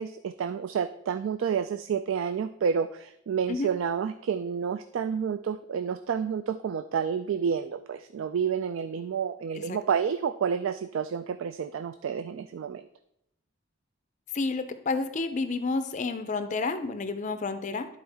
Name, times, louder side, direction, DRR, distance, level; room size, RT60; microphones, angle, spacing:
voice 1, 0.0-12.9, right 7 dB, 65° right, 11 dB, 0.3 m, -29 dB
voice 2, 14.3-17.9, left 3 dB, 35° left, 9 dB, 0.5 m, -30 dB
11.5 x 4.3 x 3.4 m, 0.79 s
head